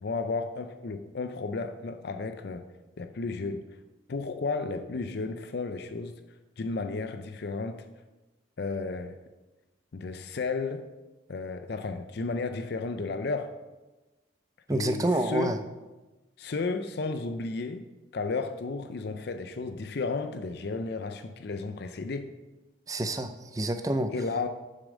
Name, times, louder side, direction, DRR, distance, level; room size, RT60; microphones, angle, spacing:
voice 1, 0.0-2.6 3.0-3.6 4.1-6.2 6.6-7.8 8.6-9.1 9.9-10.9 11.3-13.5 14.7-15.6 16.4-17.9 18.1-22.3 24.1-24.5, left 3 dB, 55° left, 8 dB, 0.4 m, -33 dB
voice 2, 14.7-15.6 22.9-24.1, right 1 dB, 15° right, 9 dB, 0.4 m, -28 dB
7.2 x 6.5 x 5.1 m, 1.1 s
head